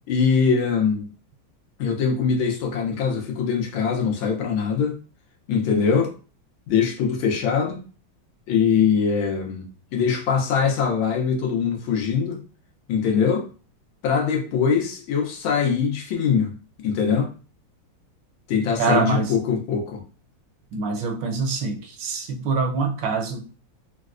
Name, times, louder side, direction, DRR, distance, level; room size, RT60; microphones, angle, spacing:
voice 1, 0.1-1.1 1.8-4.9 5.5-6.1 6.7-7.8 8.5-9.6 9.9-12.4 12.9-13.5 14.0-16.5 16.8-17.3 18.5-20.0, left 6 dB, 85° left, 1.6 m, -22 dB
voice 2, 18.8-19.3 20.7-23.5, right 4 dB, 75° right, 1.2 m, -25 dB
4.4 x 2.0 x 2.4 m
omnidirectional pair, 2.2 m